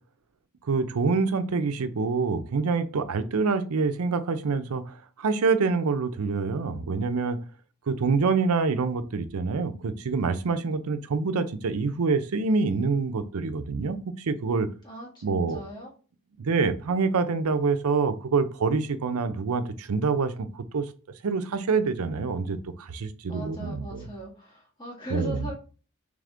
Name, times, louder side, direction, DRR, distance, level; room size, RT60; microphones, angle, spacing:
voice 1, 0.6-7.4 7.9-14.7 15.2-15.6 16.4-20.9 21.2-24.1 25.1-25.5, right 4 dB, 85° right, 0.5 m, -26 dB
voice 2, 14.8-15.9 23.3-25.5, right 1 dB, 20° left, 1.6 m, -39 dB
3.4 x 3.4 x 3.7 m
head